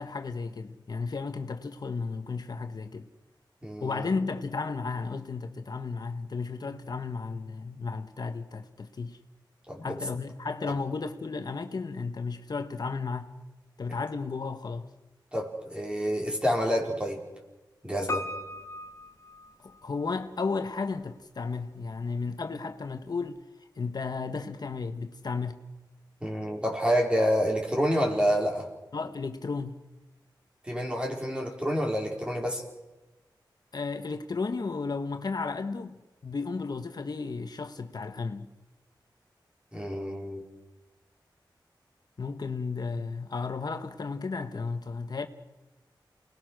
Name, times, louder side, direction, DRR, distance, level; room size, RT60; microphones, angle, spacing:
voice 1, 0.0-3.1 3.8-9.2 9.8-13.3 13.8-14.9 19.6-23.4 23.8-25.6 28.9-29.8 33.7-38.5 42.2-45.3, left 4 dB, 55° left, 1.2 m, -33 dB
voice 2, 3.6-4.1 9.7-9.9 15.3-17.2 17.8-18.3 26.2-28.7 30.6-32.6 39.7-40.4, equal, 15° right, 4.6 m, -28 dB
Piano, 18.1-20.1 20.4-20.5, left 2 dB, 40° left, 1.3 m, -37 dB
29.0 x 20.0 x 6.4 m
wide cardioid pair, 115°, 8 cm